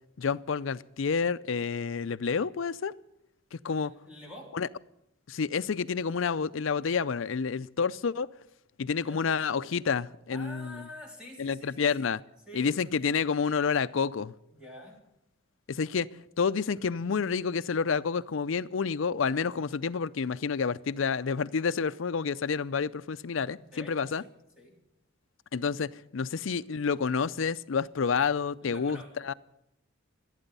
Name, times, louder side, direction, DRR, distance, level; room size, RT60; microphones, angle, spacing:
voice 1, 0.2-3.0 3.6-3.9 4.5-4.7 5.3-8.3 8.8-10.8 11.4-12.2 12.5-14.3 15.7-24.2 25.5-29.3, left 5 dB, 75° left, 0.5 m, -29 dB
voice 2, 3.7-4.5 9.0-9.3 10.3-12.1 12.5-12.7 14.5-15.0 23.5-24.3 24.6-24.7 28.6-29.4, left 1 dB, 5° right, 3.6 m, -47 dB
26.5 x 9.0 x 5.5 m
head